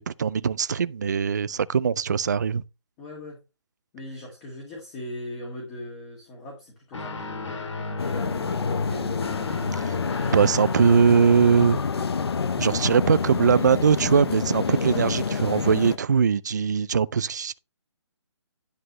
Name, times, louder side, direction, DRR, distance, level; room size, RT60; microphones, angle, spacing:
voice 1, 0.2-2.6 9.8-9.9 10.3-11.8 12.5-17.6, right 6 dB, 40° right, 0.3 m, -21 dB
voice 2, 3.0-3.4 3.9-9.7, left 2 dB, 15° left, 1.7 m, -39 dB
Guitar, 6.9-14.6, left 3 dB, 80° left, 2.8 m, -34 dB
sound 1, 8.0-16.0, left 5 dB, 60° left, 1.0 m, -28 dB
10.0 x 7.6 x 3.1 m
hypercardioid pair, 170°, 15 cm